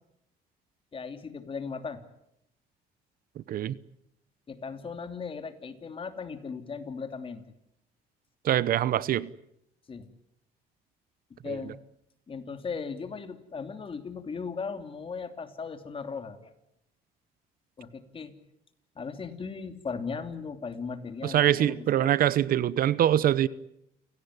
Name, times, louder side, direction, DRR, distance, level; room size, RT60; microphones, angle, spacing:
voice 1, 0.9-2.0 4.5-7.4 9.9-10.1 11.3-11.8 12.3-16.5 17.8-18.3 19.0-22.2, left 5 dB, 30° left, 3.0 m, -37 dB
voice 2, 8.4-9.3 11.5-11.6 21.2-23.5, right 11 dB, 60° right, 0.9 m, -24 dB
29.0 x 17.5 x 9.7 m
cardioid pair, 110°, 17 cm